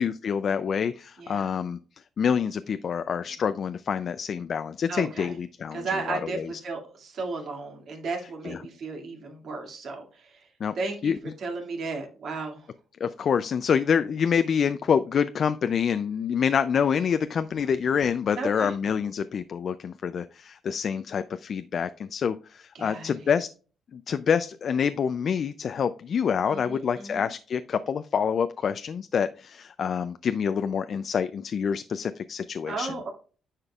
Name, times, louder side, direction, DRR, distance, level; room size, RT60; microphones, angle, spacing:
voice 1, 0.0-1.8 2.2-6.5 8.4-8.6 10.6-10.7 11.0-11.2 13.0-23.5 23.9-33.0, left 7 dB, 55° left, 11 dB, 0.4 m, -27 dB
voice 2, 1.2-1.5 4.9-5.3 5.7-10.5 10.7-12.7 18.4-18.8 22.7-23.3 26.4-27.3 32.7-33.1, right 3 dB, 60° right, 2 dB, 2.3 m, -34 dB
9.8 x 5.1 x 2.4 m, 0.38 s
cardioid pair, 90°, 0 cm